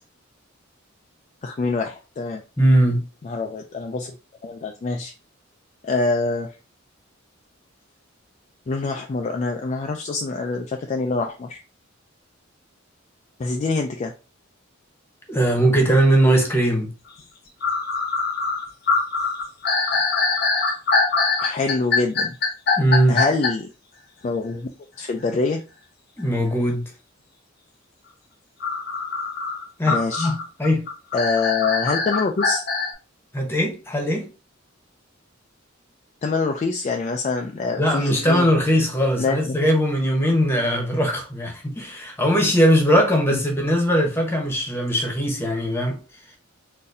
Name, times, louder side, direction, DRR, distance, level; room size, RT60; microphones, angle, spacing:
voice 1, 1.4-2.4 3.2-4.2 4.4-5.1 5.8-6.5 8.7-11.6 13.4-14.1 21.4-22.4 23.1-23.7 24.2-24.7 25.0-25.6 29.9-30.3 31.1-32.6 36.2-38.5 39.2-39.6, left 3 dB, 35° left, 0.3 m, -25 dB
voice 2, 2.6-3.0 15.3-16.9 22.8-23.2 26.2-26.8 29.8-30.3 30.6-30.8 33.3-34.3 37.8-46.0, equal, 10° left, 0.9 m, -20 dB
sound 1, 17.2-17.3 17.6-23.5 28.6-32.9, left 4 dB, 50° left, 0.8 m, -23 dB
3.9 x 2.6 x 2.6 m
head